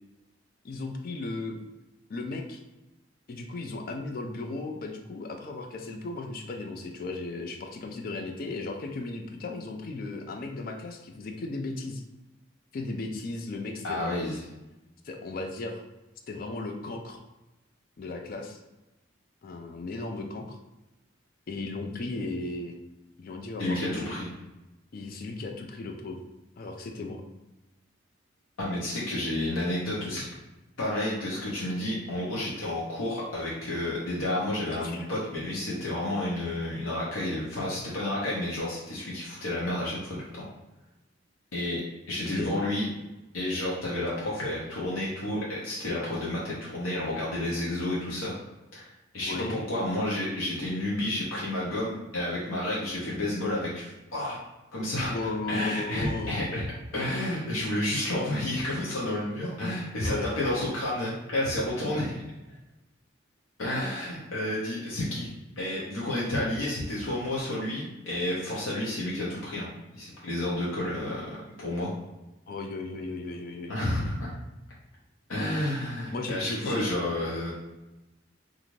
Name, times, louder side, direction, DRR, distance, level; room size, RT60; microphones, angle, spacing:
voice 1, 0.6-1.6 2.1-2.6 3.3-12.0 12.7-14.3 15.0-15.8 16.3-17.2 18.0-18.6 19.4-20.6 21.5-22.8 23.2-24.2 24.9-26.2 26.6-27.2 34.7-35.1 42.3-42.5 49.3-49.5 55.1-56.4 60.0-60.7 72.5-73.7 76.1-76.8, left 3 dB, 45° left, 4 dB, 0.4 m, -36 dB
voice 2, 13.8-14.4 23.6-24.3 28.6-30.3 30.8-40.5 41.5-41.8 42.1-42.9 43.3-48.3 48.7-54.4 54.7-55.1 55.5-56.7 56.9-62.2 63.6-65.3 65.6-71.9 73.7-74.3 75.3-77.5, left 1 dB, 90° left, -6 dB, 0.7 m, -30 dB
2.5 x 2.5 x 3.0 m, 1.0 s
head